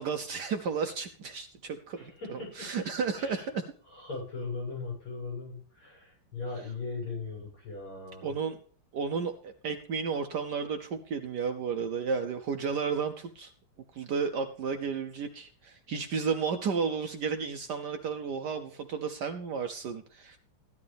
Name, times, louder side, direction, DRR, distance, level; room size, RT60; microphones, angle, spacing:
voice 1, 0.0-3.7 6.6-6.7 8.2-8.6 8.9-13.5 13.9-20.4, right 5 dB, 65° right, 7 dB, 1.1 m, -33 dB
voice 2, 2.0-2.7 3.1-3.5 3.9-8.3, left 3 dB, 75° left, -2 dB, 8.2 m, -39 dB
14.5 x 11.0 x 3.5 m, 0.43 s
omnidirectional pair, 2.4 m